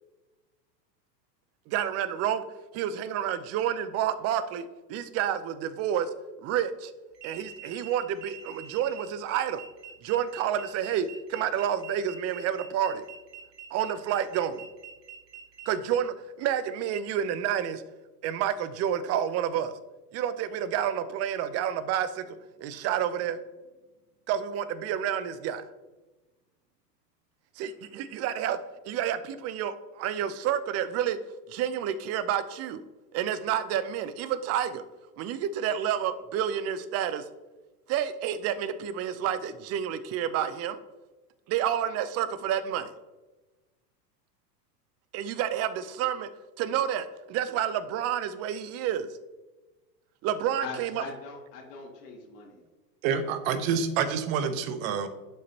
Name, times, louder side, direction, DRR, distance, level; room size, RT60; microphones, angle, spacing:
voice 1, 1.7-2.4 2.7-6.1 6.4-6.9 7.2-9.6 10.0-13.0 13.7-14.6 15.7-17.8 18.2-19.7 20.1-23.4 24.3-25.6 27.6-28.6 28.9-31.2 31.5-32.8 33.1-34.8 35.2-37.2 37.9-40.8 41.5-42.9 45.1-46.3 46.6-49.1 50.2-51.0, right 9 dB, 30° right, 13 dB, 0.6 m, -29 dB
sound 1, 7.1-15.7, right 9 dB, 80° right, 1.6 m, -46 dB
voice 2, 50.6-52.6, left 4 dB, 75° left, -1 dB, 2.4 m, -41 dB
voice 3, 53.0-55.1, right 6 dB, 55° right, 10 dB, 1.1 m, -27 dB
11.5 x 5.3 x 2.8 m, 1.2 s
hypercardioid pair, 110°, 48 cm